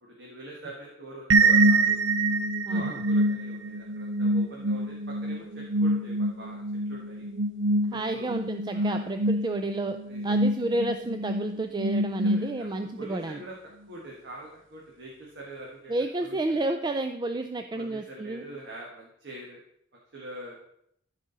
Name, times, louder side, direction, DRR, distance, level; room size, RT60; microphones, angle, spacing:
voice 1, 0.0-2.0 2.7-7.3 7.9-8.3 8.7-9.1 10.1-10.4 12.2-13.6 13.9-16.0 16.2-16.7 17.7-19.6 20.1-20.6, right 1 dB, 60° right, -3 dB, 1.6 m, -44 dB
sound 1, 1.3-12.9, right 2 dB, 85° right, 0.5 m, -26 dB
voice 2, 2.7-3.0 7.9-10.0 10.2-13.4 15.9-18.6, right 2 dB, 25° right, 7 dB, 0.4 m, -31 dB
13.5 x 5.0 x 4.0 m, 0.74 s
head